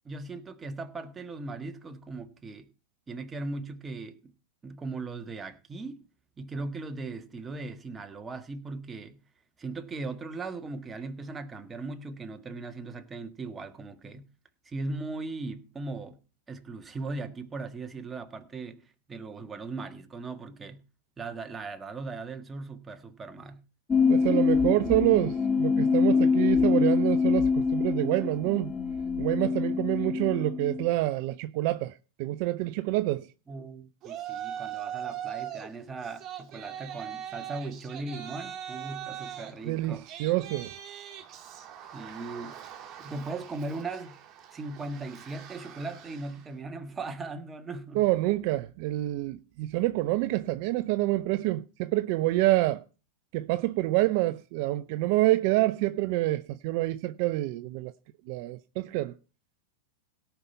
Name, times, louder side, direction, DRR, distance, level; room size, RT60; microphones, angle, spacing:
voice 1, 0.0-2.7 3.1-4.3 4.6-6.0 6.4-9.2 9.6-14.2 14.6-16.2 16.5-20.8 21.2-23.6 33.5-40.0 41.9-42.6 43.0-44.1 44.5-48.0, right 3 dB, 15° right, 1.4 m, -38 dB
sound 1, 23.9-30.9, left 5 dB, 20° left, 1.2 m, -25 dB
voice 2, 24.1-28.7 29.2-31.9 32.2-33.3 39.7-40.7 48.0-52.8 53.3-57.9 58.3-59.1, right 17 dB, 55° right, 0.5 m, -27 dB
Yell, 34.0-35.7 36.0-46.5, right 10 dB, 35° right, 2.1 m, -41 dB
17.0 x 5.8 x 5.5 m
hypercardioid pair, 105°, 0 cm